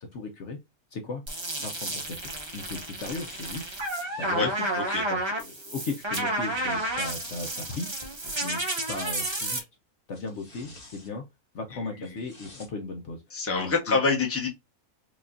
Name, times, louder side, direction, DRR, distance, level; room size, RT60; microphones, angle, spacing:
voice 1, 0.1-0.6 0.9-1.2 1.6-3.6 4.2-4.5 5.1-7.9 8.4-9.7 10.1-11.2 11.5-13.2 13.6-14.0, left 3 dB, 60° left, 0.9 m, -36 dB
sound 1, 1.3-9.6, right 1 dB, 25° right, 0.6 m, -31 dB
sound 2, 3.1-5.0 5.9-7.3 8.4-9.1 10.1-11.1 12.0-12.7 13.3-13.4, left 2 dB, 40° left, 1.4 m, -50 dB
voice 2, 11.7-12.2 13.3-14.5, left 4 dB, 10° left, 0.8 m, -26 dB
4.9 x 2.4 x 2.6 m
omnidirectional pair, 1.5 m